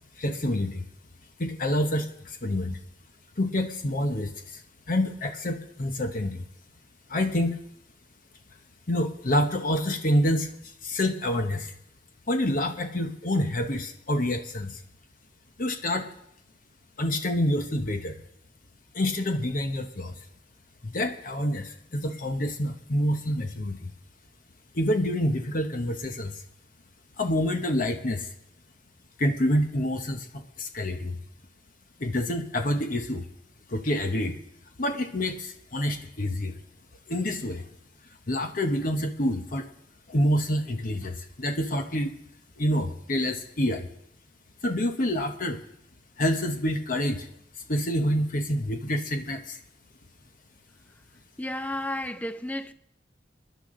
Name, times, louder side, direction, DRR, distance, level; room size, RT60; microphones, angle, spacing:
voice 1, 0.2-0.8 1.4-2.8 3.4-4.6 4.9-6.5 7.1-7.6 8.9-10.5 10.8-11.7 12.3-14.8 15.6-16.1 17.0-18.2 18.9-20.2 20.8-23.9 24.7-26.4 27.2-28.3 29.2-31.2 32.0-33.2 33.7-34.4 34.8-36.6 37.1-37.6 38.3-39.7 40.1-42.2 42.6-43.9 44.6-45.6 46.2-47.3 47.7-49.6, left 1 dB, 50° left, 1.1 m, -27 dB
voice 2, 51.4-52.7, left 1 dB, 10° left, 0.5 m, -32 dB
28.0 x 10.5 x 3.8 m
head